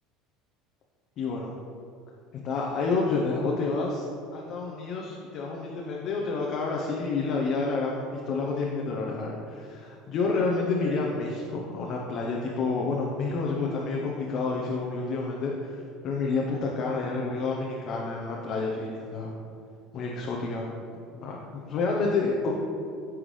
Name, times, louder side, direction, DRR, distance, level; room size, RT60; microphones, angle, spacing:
voice 1, 1.2-1.5 2.4-4.1 4.3-19.3 19.9-20.7 21.1-22.5, left 3 dB, 55° left, -2 dB, 0.8 m, -29 dB
10.0 x 3.6 x 3.2 m, 2.4 s
hypercardioid pair, 85°, 0 cm